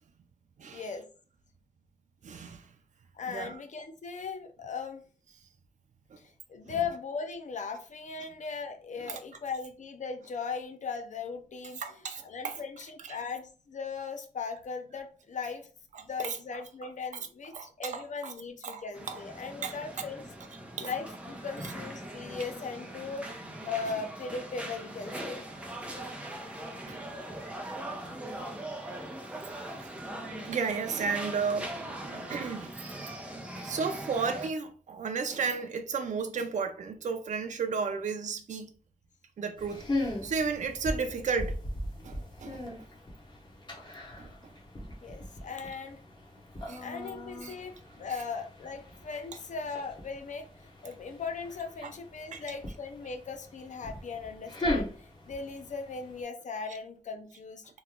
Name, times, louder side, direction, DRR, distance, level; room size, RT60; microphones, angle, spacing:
voice 1, 0.7-1.1 3.1-5.0 6.2-15.7 16.0-20.2 20.8-23.3 23.7-25.5 42.0-42.1 45.0-46.0 46.8-57.7, left 5 dB, 65° left, 0.5 m, -38 dB
voice 2, 2.2-2.6 3.3-3.6 6.7-6.8 9.0-9.2 11.8-12.6 13.1-13.2 16.2-16.4 17.5-18.3 18.6-19.2 19.6-19.7 20.8-20.9 26.9-27.0 28.4-28.5 29.6-29.9 30.2-32.7 33.6-38.7 39.4-41.6 42.0-42.6 44.2-44.3 46.7-46.8 47.4-47.5 51.8-51.9 52.3-52.4, right 5 dB, 70° right, 0.4 m, -34 dB
sound 1, 18.9-34.5, right 1 dB, 10° right, 0.6 m, -41 dB
sound 2, 39.6-56.2, left 1 dB, 35° left, 1.0 m, -39 dB
3.0 x 2.2 x 3.6 m
wide cardioid pair, 130°, 13 cm